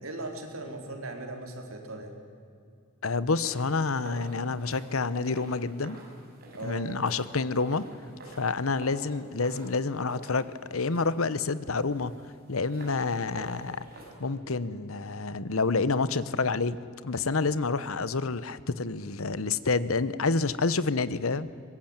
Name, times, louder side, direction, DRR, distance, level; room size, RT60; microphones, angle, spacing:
voice 1, 0.0-2.1 6.5-6.9, right 2 dB, 85° right, 3 dB, 4.1 m, -38 dB
voice 2, 3.0-6.0 6.6-7.8 8.4-12.1 12.5-13.9 14.2-16.8 17.0-21.5, left 4 dB, 80° left, 16 dB, 1.0 m, -28 dB
sound 1, 3.4-14.1, right 2 dB, 50° right, 6.0 m, -48 dB
24.0 x 21.0 x 9.0 m, 2.4 s
head